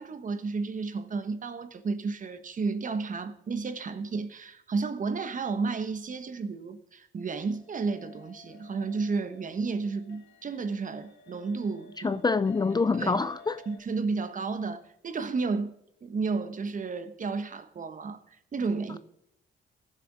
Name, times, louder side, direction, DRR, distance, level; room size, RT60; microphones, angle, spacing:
voice 1, 0.0-12.1 13.0-13.2 13.7-15.7 16.0-19.0, right 4 dB, 40° right, 1.3 m, -32 dB
sound 1, 7.4-13.8, left 6 dB, 70° left, 3.1 m, -53 dB
voice 2, 12.0-13.6, left 4 dB, 20° left, 0.5 m, -26 dB
15.0 x 6.9 x 6.0 m
cardioid pair, 90°, 20 cm